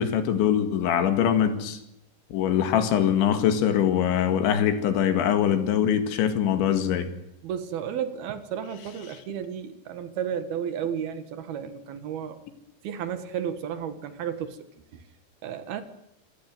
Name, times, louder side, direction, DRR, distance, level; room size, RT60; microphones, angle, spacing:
voice 1, 0.0-1.8 2.3-7.1, left 9 dB, 80° left, 9 dB, 4.3 m, -23 dB
voice 2, 7.4-12.4 12.8-14.6 14.9-15.0 15.4-15.8, right 8 dB, 65° right, 10 dB, 3.1 m, -33 dB
27.5 x 17.0 x 9.3 m, 0.81 s
omnidirectional pair, 5.2 m